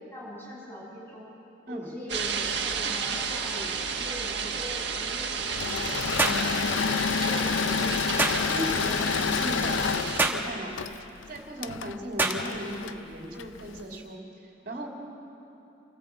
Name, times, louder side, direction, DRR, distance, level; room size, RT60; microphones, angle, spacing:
voice 1, 0.1-1.3 1.7-6.9 7.2-8.3, equal, 10° left, -6 dB, 7.0 m, -42 dB
sound 1, 2.1-10.3, right 6 dB, 60° right, 1.6 m, -32 dB
Engine / Mechanisms, 5.4-13.8, left 6 dB, 85° left, 0.5 m, -29 dB
sound 2, 6.2-6.5 8.2-8.4 10.2-10.5 12.2-12.4, right 2 dB, 10° right, 1.2 m, -25 dB
voice 2, 8.5-10.7 11.3-14.2 14.6-14.9, right 1 dB, 45° right, -1 dB, 2.7 m, -37 dB
26.0 x 14.5 x 8.1 m, 3.0 s
head